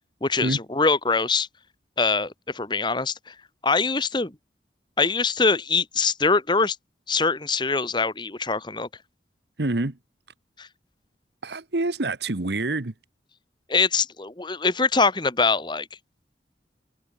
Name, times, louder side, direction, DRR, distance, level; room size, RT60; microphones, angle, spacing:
voice 1, 0.2-1.5 2.0-3.3 3.6-4.3 5.0-6.8 7.1-8.9 10.6-10.7 13.7-15.9, left 4 dB, 25° left, 1.3 m, -23 dB
voice 2, 9.6-10.0 11.4-12.9, right 2 dB, 70° right, 1.3 m, -26 dB
head